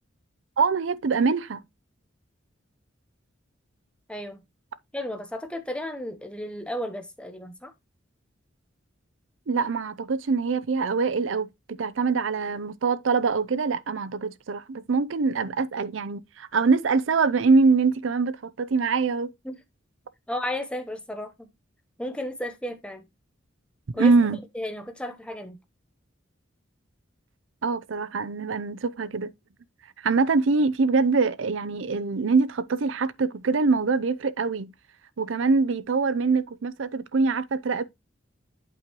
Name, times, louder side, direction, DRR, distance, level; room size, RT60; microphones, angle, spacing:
voice 1, 0.6-1.6 9.5-19.3 24.0-24.4 27.6-29.3 30.0-34.7 35.2-37.8, right 4 dB, 75° right, 0.6 m, -24 dB
voice 2, 4.1-4.4 4.9-7.7 19.4-19.6 20.3-21.5 22.0-23.0 23.9-24.1 24.5-25.6, left 1 dB, 5° left, 1.0 m, -33 dB
8.4 x 5.2 x 3.0 m
head